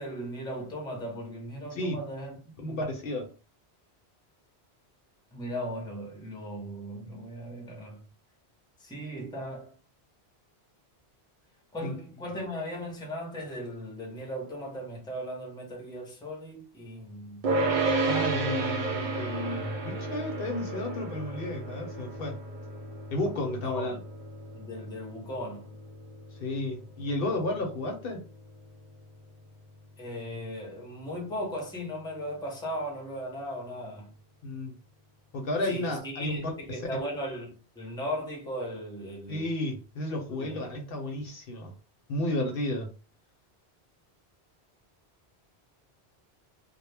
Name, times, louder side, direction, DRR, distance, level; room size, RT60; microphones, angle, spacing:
voice 1, 0.0-2.8 5.3-8.0 8.8-9.7 11.7-17.4 23.6-24.0 24.5-25.8 30.0-34.1 35.7-39.5 40.3-40.6, equal, 5° left, 0.6 m, -37 dB
voice 2, 2.6-3.3 11.8-12.0 18.0-22.4 23.1-23.9 26.4-28.2 34.4-34.7 35.3-36.8 39.3-41.7 42.1-42.9, left 1 dB, 65° left, 0.8 m, -32 dB
sound 1, 17.4-28.8, right 3 dB, 60° right, 0.6 m, -32 dB
2.2 x 2.1 x 3.2 m
omnidirectional pair, 1.1 m